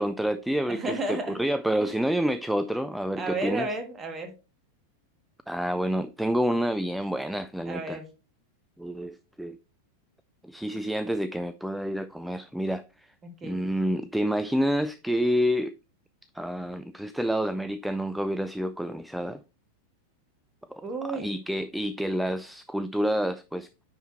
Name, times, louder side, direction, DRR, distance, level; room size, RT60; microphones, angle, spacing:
voice 1, 0.0-3.7 5.5-8.0 8.8-9.6 10.4-13.1 13.4-15.7 16.3-19.4 20.7-20.8 21.2-23.7, equal, ahead, 0.3 m, -28 dB
voice 2, 0.7-1.4 1.8-1.9 3.2-4.3 7.6-8.1 13.2-13.6 20.8-21.4, right 2 dB, 20° right, 1.6 m, -33 dB
9.7 x 4.6 x 3.1 m
figure-of-eight pair, 90°, 0 cm